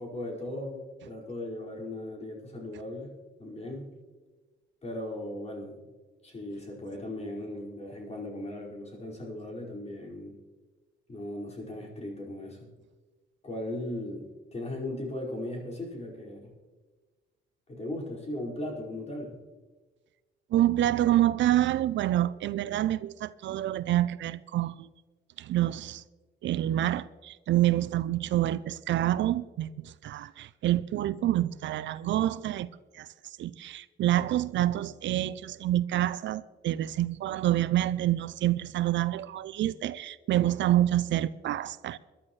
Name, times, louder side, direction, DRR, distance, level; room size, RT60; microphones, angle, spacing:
voice 1, 0.0-3.1 3.4-3.9 4.8-5.8 6.2-10.4 11.1-12.7 13.4-16.5 17.7-19.4, left 1 dB, 35° left, 5.0 m, -37 dB
voice 2, 20.5-24.9 25.4-26.0 26.4-32.7 32.9-42.0, right 13 dB, 70° right, 0.5 m, -27 dB
21.5 x 12.0 x 3.2 m
cardioid pair, 90°, 20 cm